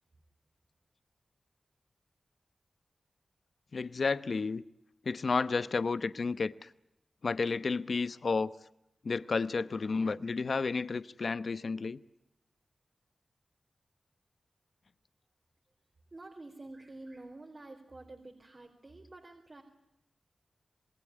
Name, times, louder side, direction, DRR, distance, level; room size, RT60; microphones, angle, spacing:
voice 1, 3.7-4.6 5.0-6.7 7.2-8.5 9.0-12.0, left 4 dB, 60° left, 1.0 m, -31 dB
voice 2, 16.1-19.6, right 2 dB, 35° right, 3.9 m, -49 dB
28.0 x 20.5 x 9.9 m
wide cardioid pair, 90°, 0 cm